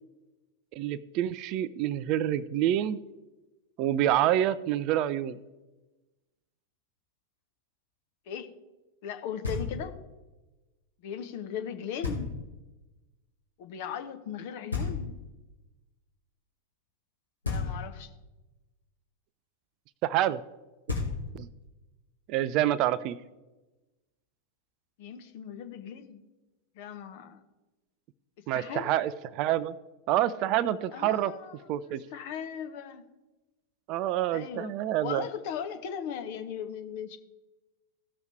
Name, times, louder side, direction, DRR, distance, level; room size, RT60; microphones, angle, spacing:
voice 1, 0.8-3.0 3.8-5.4 20.0-20.4 21.3-21.5 22.3-23.2 28.5-29.7 30.1-31.3 31.7-32.0 33.9-35.2, right 12 dB, 40° right, 17 dB, 0.4 m, -27 dB
voice 2, 9.0-9.9 11.0-12.3 13.6-15.1 17.4-18.1 25.0-26.2 26.7-27.4 28.5-29.0 30.9-31.6 31.8-33.1 34.3-34.7 35.0-37.2, left 8 dB, 50° left, 7 dB, 1.0 m, -38 dB
Knock, 9.4-10.1 12.0-12.7 14.7-15.5 17.4-18.2 20.5-20.6 20.9-21.7, left 4 dB, 80° left, 2.2 m, -34 dB
16.0 x 6.3 x 3.4 m, 1.1 s
figure-of-eight pair, 90°, 0 cm